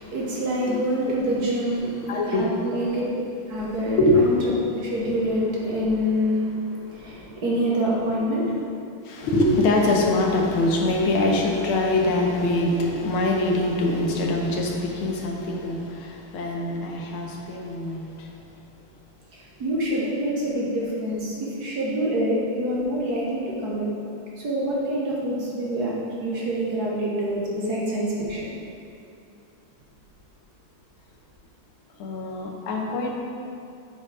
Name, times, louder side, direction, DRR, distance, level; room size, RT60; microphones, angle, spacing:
voice 1, 0.0-3.1 3.5-4.3 4.7-8.7 19.3-23.9 24.4-25.9 26.2-28.5, equal, 55° right, -5 dB, 1.5 m, -26 dB
voice 2, 2.1-2.5 4.0-4.2 9.1-18.1 32.0-33.2, left 2 dB, 80° left, 0 dB, 1.8 m, -23 dB
7.5 x 4.5 x 4.8 m, 2.5 s
omnidirectional pair, 2.3 m